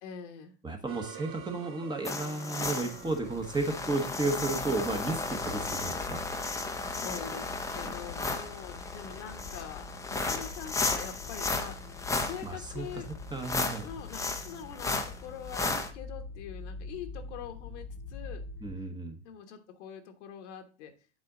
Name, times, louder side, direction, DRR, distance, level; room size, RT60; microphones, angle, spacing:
voice 1, 0.0-0.5 6.8-11.8 12.2-13.1 13.8-18.4 19.2-20.9, left 8 dB, 70° left, 6 dB, 1.3 m, -44 dB
voice 2, 0.6-6.2 7.8-7.9 12.4-12.9 13.3-13.9 18.6-19.2, right 3 dB, 10° right, 4 dB, 1.0 m, -33 dB
sound 1, 0.9-5.9, right 7 dB, 35° right, 0.9 m, -49 dB
sound 2, 2.1-15.9, left 3 dB, 10° left, 0.7 m, -34 dB
sound 3, 2.9-18.8, left 4 dB, 45° left, 1.0 m, -45 dB
7.5 x 4.3 x 3.8 m, 0.37 s
hypercardioid pair, 110°, 36 cm